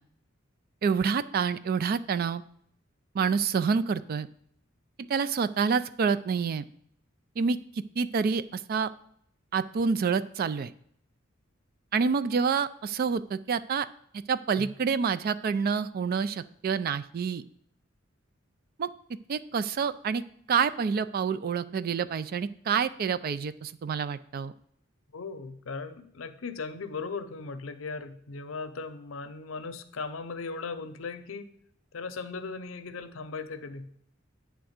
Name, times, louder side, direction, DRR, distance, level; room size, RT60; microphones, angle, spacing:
voice 1, 0.8-2.4 3.1-4.3 5.0-6.6 7.4-7.6 8.0-8.9 9.5-10.7 11.9-13.9 14.1-17.4 18.8-18.9 19.3-20.2 20.5-24.5, right 6 dB, 50° right, 14 dB, 0.3 m, -27 dB
voice 2, 25.1-31.5 31.9-33.9, left 4 dB, 80° left, 10 dB, 0.6 m, -38 dB
8.8 x 3.5 x 6.4 m, 0.66 s
head